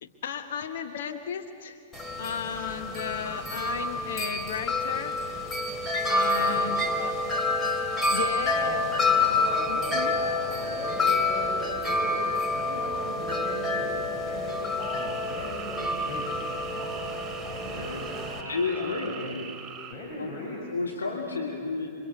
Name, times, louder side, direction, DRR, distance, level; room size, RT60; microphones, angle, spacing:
voice 1, 0.0-1.8 2.2-5.2 6.1-7.1 8.1-8.9 9.7-10.2, left 7 dB, 60° left, 6 dB, 1.2 m, -34 dB
Wind chime, 1.9-18.4, left 2 dB, 15° left, 3.1 m, -28 dB
voice 2, 6.3-6.8 8.5-19.5 19.9-20.7, left 1 dB, 35° left, -2 dB, 6.4 m, -39 dB
sound 1, 14.8-19.9, right 7 dB, 20° right, 3.4 m, -42 dB
voice 3, 18.4-19.1 20.2-21.9, left 4 dB, 75° left, -1 dB, 2.9 m, -31 dB
28.5 x 25.0 x 8.2 m, 2.3 s
figure-of-eight pair, 100°, 0 cm